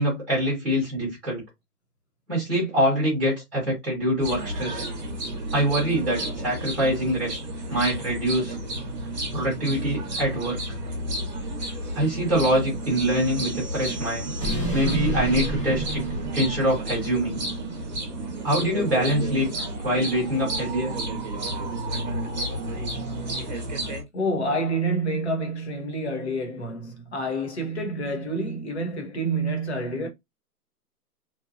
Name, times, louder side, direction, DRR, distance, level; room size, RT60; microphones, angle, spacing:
voice 1, 0.0-1.4 2.3-4.8 5.5-7.4 7.7-8.6 9.3-10.6 11.9-14.3 14.7-16.1 16.3-17.4 18.4-19.5 19.8-20.9, equal, ahead, 1.0 m, -24 dB
sound 1, 4.2-24.0, right 1 dB, 30° right, 0.8 m, -31 dB
sound 2, 12.8-17.2, right 1 dB, 20° left, 0.5 m, -32 dB
voice 2, 24.1-30.1, right 1 dB, 45° left, 1.0 m, -28 dB
3.0 x 2.2 x 2.6 m
hypercardioid pair, 160°, 48 cm